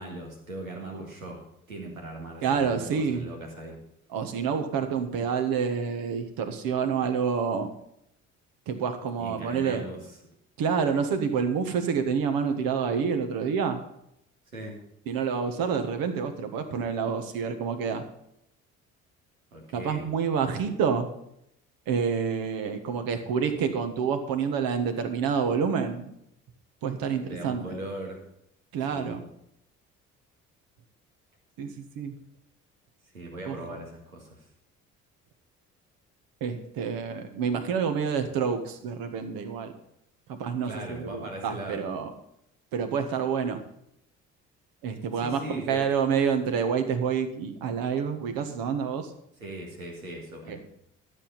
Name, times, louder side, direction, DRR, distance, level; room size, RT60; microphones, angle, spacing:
voice 1, 0.0-1.4 1.7-3.8 9.2-10.0 14.5-14.8 19.5-20.1 27.3-28.2 28.9-29.2 33.1-34.4 40.6-41.9 45.1-45.9 49.4-50.6, right 1 dB, 85° right, 0 dB, 2.1 m, -39 dB
voice 2, 2.4-3.3 4.1-7.7 8.7-9.8 10.6-13.8 15.1-18.1 19.7-21.1 21.9-26.1 26.8-27.8 28.7-29.2 31.6-32.1 33.4-33.8 36.4-39.7 40.3-42.1 42.7-43.6 44.8-49.1 50.5-50.6, right 6 dB, 60° right, 7 dB, 1.6 m, -28 dB
12.5 x 7.6 x 5.6 m, 0.77 s
figure-of-eight pair, 50°, 40 cm